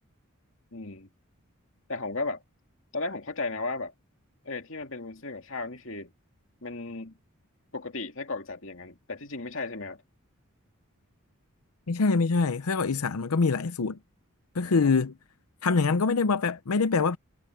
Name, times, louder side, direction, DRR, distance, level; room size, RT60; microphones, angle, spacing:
voice 1, 0.7-1.1 1.9-2.4 2.9-3.9 4.4-6.1 6.6-7.2 7.7-10.0 14.5-14.9, left 3 dB, 60° left, 2.6 m, -35 dB
voice 2, 11.9-14.0 14.5-15.1 15.6-17.2, left 4 dB, 85° left, 0.7 m, -24 dB
head